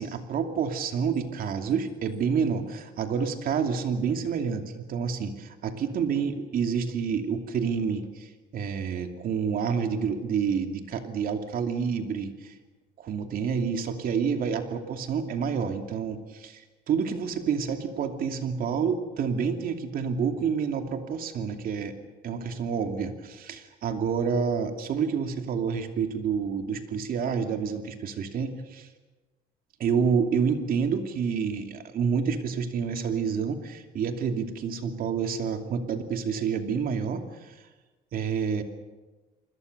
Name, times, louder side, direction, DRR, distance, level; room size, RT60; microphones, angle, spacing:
voice 1, 0.0-12.5 13.0-21.9 22.2-28.9 29.8-37.5 38.1-38.6, right 6 dB, 60° right, 5 dB, 2.7 m, -28 dB
29.0 x 21.0 x 6.8 m, 1.2 s
cardioid pair, 110°, 17 cm